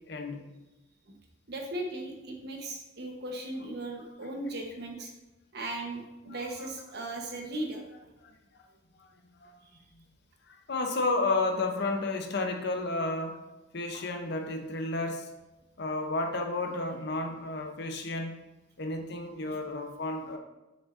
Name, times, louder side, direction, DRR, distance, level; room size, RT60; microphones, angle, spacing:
voice 1, 0.1-0.4 6.3-6.7 8.2-8.3 9.0-9.1 9.4-9.6 10.5-13.4 13.7-15.3 15.8-18.4 18.8-20.4, left 2 dB, 60° left, 4 dB, 0.7 m, -32 dB
voice 2, 1.5-5.1 5.5-7.8 9.7-9.8 13.9-14.0, right 1 dB, 55° right, 1 dB, 1.1 m, -37 dB
7.3 x 6.1 x 2.6 m, 1.0 s
head